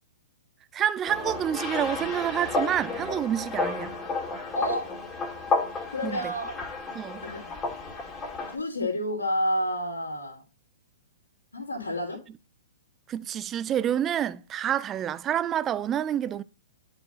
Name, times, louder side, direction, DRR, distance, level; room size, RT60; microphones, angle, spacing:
voice 1, 0.7-3.9 6.0-6.3 6.9-7.2 13.1-16.4, right 10 dB, 20° right, 0.5 m, -28 dB
sound 1, 1.1-8.6, left 3 dB, 15° left, 2.4 m, -32 dB
voice 2, 4.5-4.9 5.9-6.6 7.2-7.5 8.5-10.4 11.5-12.2, equal, 75° left, 3.1 m, -29 dB
10.5 x 5.7 x 4.1 m
figure-of-eight pair, 110°, 0 cm